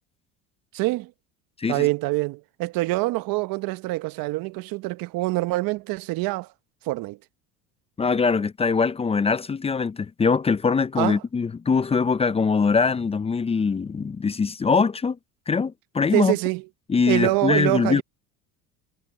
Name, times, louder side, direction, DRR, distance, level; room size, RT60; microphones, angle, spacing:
voice 1, 0.7-1.1 1.7-6.5 6.8-7.2 11.0-11.2 16.1-16.6 17.1-18.0, right 21 dB, 65° right, 1.0 m, -25 dB
voice 2, 8.0-15.2 15.5-16.4 16.9-18.0, left 5 dB, 15° left, 0.5 m, -22 dB
supercardioid pair, 100°, 37 cm